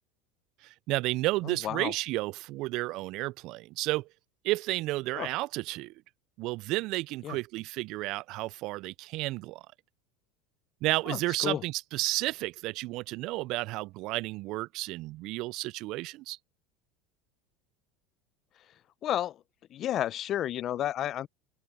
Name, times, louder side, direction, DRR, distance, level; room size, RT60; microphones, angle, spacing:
voice 1, 0.6-4.1 4.4-5.9 6.4-9.6 10.8-16.4, right 20 dB, 60° right, 0.4 m, -32 dB
voice 2, 1.4-1.9 5.2-5.3 7.2-7.4 11.1-11.6 19.0-19.4 19.7-21.3, left 12 dB, 45° left, 0.6 m, -31 dB
supercardioid pair, 100°, 0 cm